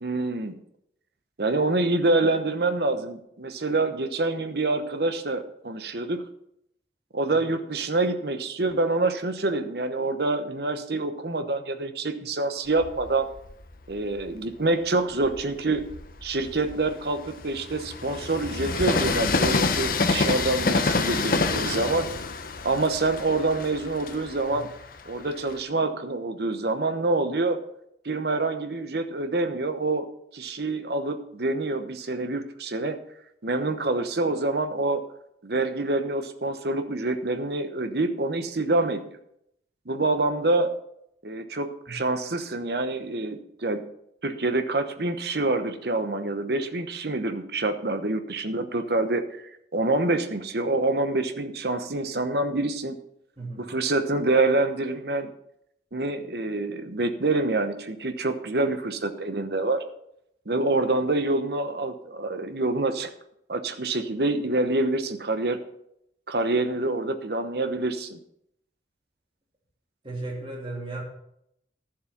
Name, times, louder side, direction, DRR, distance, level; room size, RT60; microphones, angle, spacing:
voice 1, 0.0-0.5 1.4-6.2 7.1-13.3 13.9-15.9 16.2-22.1 22.6-24.7 25.1-27.6 28.0-30.1 30.3-33.0 33.4-35.0 35.4-39.0 39.9-40.7 41.2-43.8 44.2-49.4 49.7-53.0 53.6-55.3 55.9-59.8 60.5-63.1 63.5-65.6 66.3-68.2, right 2 dB, 60° right, 8 dB, 1.0 m, -26 dB
Train, 12.7-14.4 15.0-25.6, left 3 dB, 50° left, 0.9 m, -28 dB
voice 2, 70.0-71.0, right 2 dB, 30° right, -1 dB, 2.8 m, -35 dB
11.5 x 7.6 x 5.9 m, 0.77 s
head